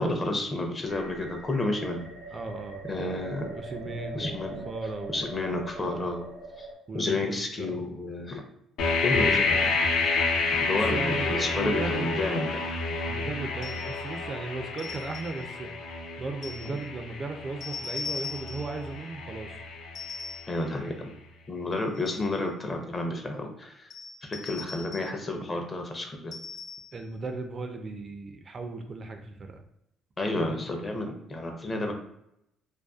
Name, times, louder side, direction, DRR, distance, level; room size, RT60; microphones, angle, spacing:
voice 1, 0.0-2.1 2.9-3.5 4.1-4.6 5.1-6.3 6.6-6.7 6.9-8.4 9.0-9.8 10.5-12.6 20.5-21.1 21.5-23.9 24.2-26.3 30.2-31.9, left 2 dB, 30° left, 3 dB, 0.5 m, -31 dB
sound 1, 0.9-6.8, right 2 dB, 85° right, 0.7 m, -42 dB
voice 2, 2.3-2.9 3.5-4.4 4.6-5.2 6.9-7.8 10.9-12.1 13.1-15.7 16.2-19.6 26.9-29.6, right 3 dB, 40° right, 5 dB, 0.3 m, -36 dB
sound 2, 8.8-20.6, left 3 dB, 75° left, 0.4 m, -29 dB
sound 3, 13.6-14.0 14.8-15.4 16.4-16.8 17.6-18.8 19.9-20.6 21.7-22.4 23.9-25.2 26.3-27.0, left 4 dB, 60° left, 0.9 m, -40 dB
2.4 x 2.2 x 2.3 m, 0.80 s
supercardioid pair, 75°, 0 cm